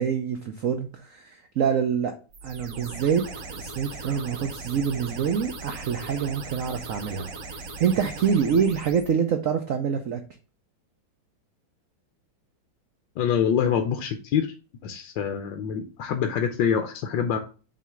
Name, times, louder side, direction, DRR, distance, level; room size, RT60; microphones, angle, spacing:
voice 1, 0.0-2.1 2.4-7.3 7.5-10.2, right 7 dB, 70° right, 6 dB, 0.7 m, -26 dB
sound 1, 2.3-9.1, right 3 dB, 50° right, 1.2 m, -39 dB
voice 2, 13.2-14.5 14.8-17.4, left 8 dB, 70° left, 6 dB, 1.3 m, -25 dB
7.6 x 3.1 x 5.7 m, 0.35 s
omnidirectional pair, 2.2 m